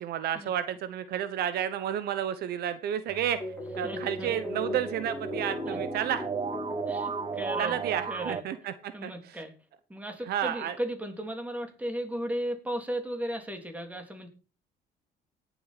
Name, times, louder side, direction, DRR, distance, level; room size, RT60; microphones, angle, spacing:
voice 1, 0.0-3.4 3.8-6.2 7.6-9.1 10.3-10.7, right 10 dB, 70° right, 12 dB, 1.2 m, -31 dB
sound 1, 3.1-8.4, right 6 dB, 30° right, 0.7 m, -37 dB
sound 2, 3.4-8.5, left 1 dB, 10° left, 6.7 m, -37 dB
voice 2, 3.8-4.3 5.6-5.8 6.9-7.8 8.1-8.4 8.9-9.5 9.9-14.3, right 1 dB, 10° right, 5 dB, 3.2 m, -35 dB
18.5 x 7.7 x 4.2 m, 0.35 s
cardioid pair, 110°, 17 cm